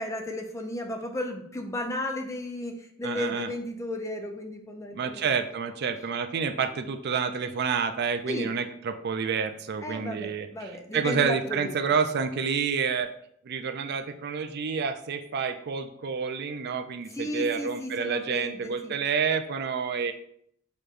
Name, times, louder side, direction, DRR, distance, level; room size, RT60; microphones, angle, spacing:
voice 1, 0.0-5.3 8.3-8.5 9.8-11.7 17.1-19.0, left 1 dB, 15° left, 3 dB, 0.6 m, -34 dB
voice 2, 3.0-3.5 4.9-13.1 13.4-20.1, right 6 dB, 55° right, 8 dB, 0.4 m, -29 dB
6.6 x 3.0 x 2.5 m, 0.67 s
head